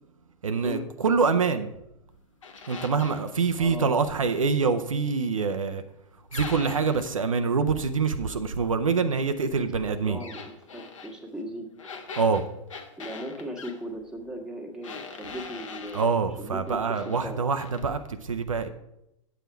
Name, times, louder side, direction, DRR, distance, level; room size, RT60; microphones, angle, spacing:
voice 1, 0.4-1.7 2.7-5.8 6.3-10.2 12.2-12.5 15.9-18.7, right 5 dB, 80° right, 8 dB, 0.6 m, -25 dB
sound 1, 2.4-3.3 6.3-7.1 10.2-11.1 11.8-13.8 14.8-16.2 16.7-17.3 17.6-17.8, left 5 dB, 70° left, 1.2 m, -41 dB
voice 2, 3.6-3.9 9.5-11.7 13.0-17.4, equal, 5° right, -1 dB, 1.5 m, -38 dB
8.9 x 7.1 x 4.6 m, 0.83 s
figure-of-eight pair, 100°, 17 cm